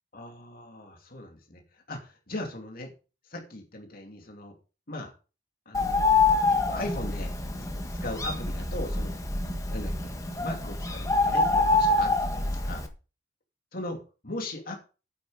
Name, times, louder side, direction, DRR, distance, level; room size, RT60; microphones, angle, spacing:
voice 1, 0.1-2.9 3.3-4.5 4.9-5.1 5.7-6.1 6.4-7.4 8.0-9.2 9.7-10.1 10.4-12.8 13.7-14.7, left 1 dB, 55° left, 2 dB, 2.8 m, -38 dB
Bird, 5.7-12.9, left 3 dB, 20° left, 1.6 m, -26 dB
9.7 x 8.6 x 5.1 m, 0.33 s
head